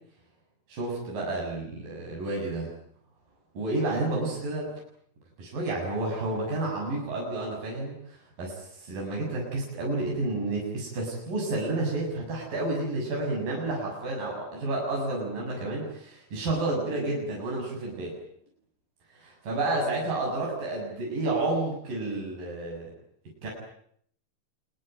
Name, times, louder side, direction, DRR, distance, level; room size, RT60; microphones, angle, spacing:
voice 1, 0.7-2.7 3.6-4.7 5.4-18.1 19.2-22.9 23.4-23.5, right 2 dB, 55° right, -2 dB, 8.8 m, -30 dB
26.5 x 22.5 x 9.1 m, 0.66 s
omnidirectional pair, 4.6 m